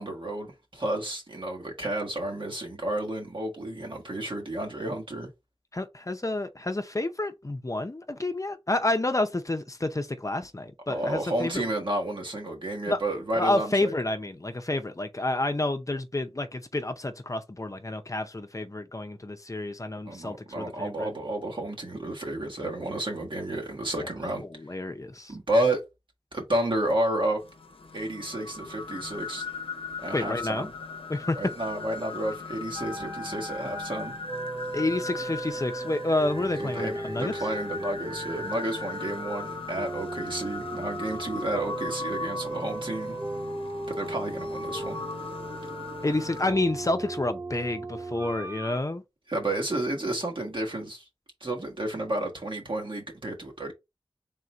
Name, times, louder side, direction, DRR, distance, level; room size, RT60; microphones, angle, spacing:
voice 1, 0.0-5.3 10.9-13.9 20.0-24.4 25.3-25.8 26.3-27.4 27.9-29.4 30.0-30.7 31.4-34.1 36.6-43.2 43.9-45.0 49.3-51.1 51.4-53.7, right 1 dB, 60° right, 1.5 m, -31 dB
voice 2, 5.7-11.6 12.9-13.0 13.4-21.1 24.4-25.3 30.1-30.7 31.1-31.4 34.7-37.3 46.0-49.0, left 2 dB, 35° left, 0.6 m, -29 dB
sound 1, 27.4-46.5, left 4 dB, 80° left, 0.7 m, -39 dB
sound 2, 32.8-48.8, right 2 dB, 25° right, 0.4 m, -37 dB
3.8 x 2.5 x 4.4 m
wide cardioid pair, 50°, 9 cm